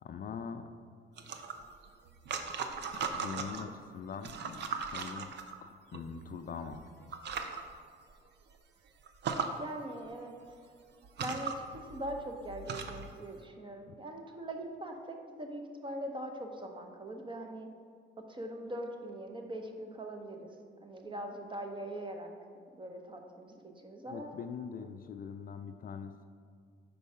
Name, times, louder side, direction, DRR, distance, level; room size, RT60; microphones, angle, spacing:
voice 1, 0.0-0.7 3.1-5.3 5.6-6.8 24.1-26.2, left 6 dB, 45° left, 8 dB, 0.4 m, -42 dB
sound 1, 1.2-3.7 4.1-6.0 6.7-6.8 7.1-7.6 8.1-8.2 8.5-8.6 9.1-9.5 10.5-10.6 11.0-13.1, right 5 dB, 60° right, 0.6 m, -38 dB
voice 2, 9.6-10.6 11.2-17.7 18.3-22.3 22.7-24.3, right 1 dB, 25° right, 3 dB, 0.8 m, -42 dB
5.4 x 4.5 x 5.5 m, 2.1 s
cardioid pair, 90°, 20 cm